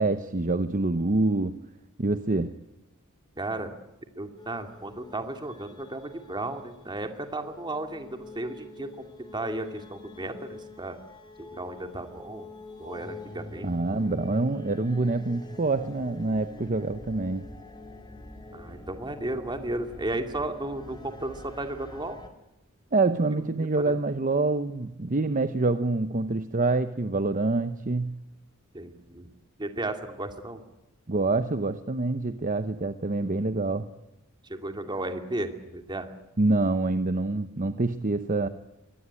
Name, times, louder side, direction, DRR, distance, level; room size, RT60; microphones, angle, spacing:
voice 1, 0.0-1.6 2.0-2.5 13.6-17.5 22.9-28.2 31.1-33.9 36.4-38.5, right 3 dB, 40° right, 10 dB, 0.9 m, -26 dB
voice 2, 3.4-3.8 4.2-11.0 11.4-12.5 12.8-13.7 18.5-22.2 23.6-23.9 28.7-29.3 29.6-30.6 34.5-36.1, right 2 dB, 20° right, 6 dB, 2.4 m, -34 dB
sound 1, 4.4-22.3, left 2 dB, 20° left, 2.7 m, -45 dB
23.5 x 19.5 x 9.8 m, 0.96 s
head